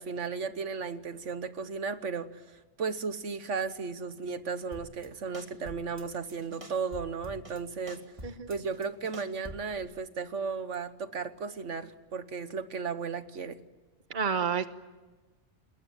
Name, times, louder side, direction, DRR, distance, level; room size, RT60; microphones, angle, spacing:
voice 1, 0.0-13.6, right 5 dB, 75° right, 11 dB, 1.5 m, -35 dB
sound 1, 4.7-5.1 5.3-6.0 6.3-7.6 7.9-9.8, right 1 dB, 25° right, 3.0 m, -46 dB
voice 2, 14.1-14.7, right 6 dB, 45° right, 10 dB, 1.4 m, -30 dB
29.5 x 21.0 x 9.0 m, 1.2 s
omnidirectional pair, 1.2 m